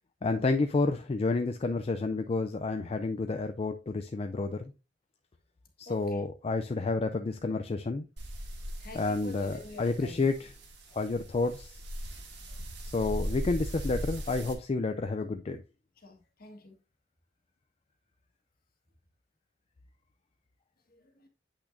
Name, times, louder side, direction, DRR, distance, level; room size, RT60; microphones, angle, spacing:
voice 1, 0.2-4.7 5.8-8.1 8.9-10.5 10.9-11.8 12.8-15.6, left 3 dB, 35° left, 0.4 m, -30 dB
voice 2, 5.8-6.2 8.8-10.3 16.0-16.8 20.9-21.3, left 2 dB, 55° left, 1.6 m, -47 dB
sound 1, 8.2-14.5, equal, 70° right, 1.9 m, -39 dB
8.3 x 5.9 x 2.6 m
head